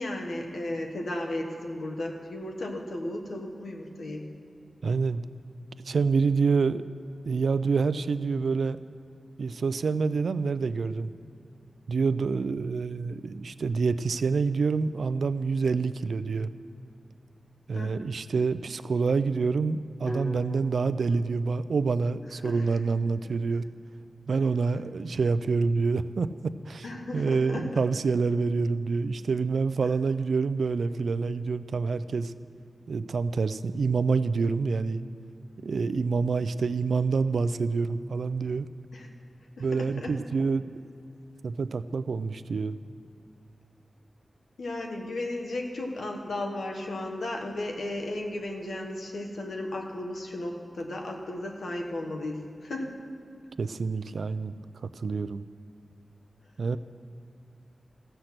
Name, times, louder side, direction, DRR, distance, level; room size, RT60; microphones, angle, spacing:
voice 1, 0.0-4.3 17.7-18.0 22.4-22.6 26.8-27.7 38.9-39.1 39.6-40.1 44.6-53.0, left 1 dB, 90° left, 2 dB, 1.3 m, -34 dB
voice 2, 4.8-5.2 5.8-6.8 7.2-8.8 9.4-11.1 11.9-16.5 17.7-23.6 24.3-32.3 32.9-35.0 35.6-38.7 39.6-40.8 41.4-42.8 53.6-55.5 56.6-56.8, right 4 dB, 80° right, 14 dB, 0.4 m, -27 dB
sound 1, 20.1-24.1, equal, 35° left, 2.2 m, -43 dB
15.0 x 7.8 x 5.9 m, 2.6 s
wide cardioid pair, 100°, 0 cm